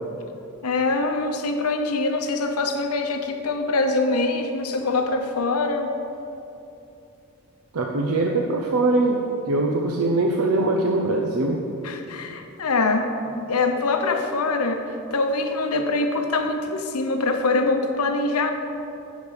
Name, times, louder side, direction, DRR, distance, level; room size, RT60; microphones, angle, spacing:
voice 1, 0.6-5.9 11.8-14.8 15.1-18.5, left 3 dB, 90° left, 6 dB, 1.0 m, -24 dB
voice 2, 7.7-11.6, right 2 dB, 85° right, 1 dB, 0.8 m, -22 dB
10.0 x 5.2 x 8.2 m, 2.8 s
head